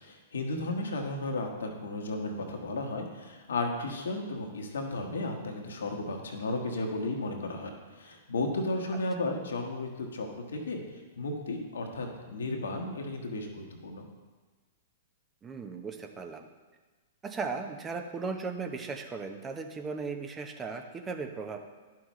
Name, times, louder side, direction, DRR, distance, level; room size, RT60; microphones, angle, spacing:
voice 1, 0.0-10.8 11.2-14.0, left 2 dB, 75° left, 2 dB, 1.3 m, -34 dB
voice 2, 15.4-16.5 17.2-21.6, right 4 dB, 20° right, 5 dB, 0.7 m, -37 dB
11.0 x 5.9 x 3.1 m, 1.3 s
figure-of-eight pair, 110°, 0 cm